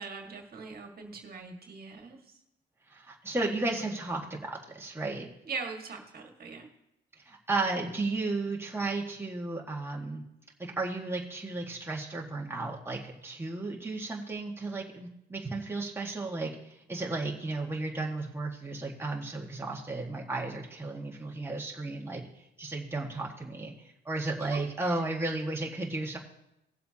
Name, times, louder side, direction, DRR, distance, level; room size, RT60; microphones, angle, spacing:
voice 1, 0.0-2.2 5.5-6.7 24.3-25.0, right 4 dB, 50° right, 2 dB, 1.9 m, -41 dB
voice 2, 2.9-5.3 7.3-10.2 10.6-22.2 22.6-23.7 24.1-26.2, right 2 dB, 10° right, -2 dB, 1.8 m, -34 dB
19.0 x 7.6 x 2.9 m, 0.84 s
cardioid pair, 90°, 20 cm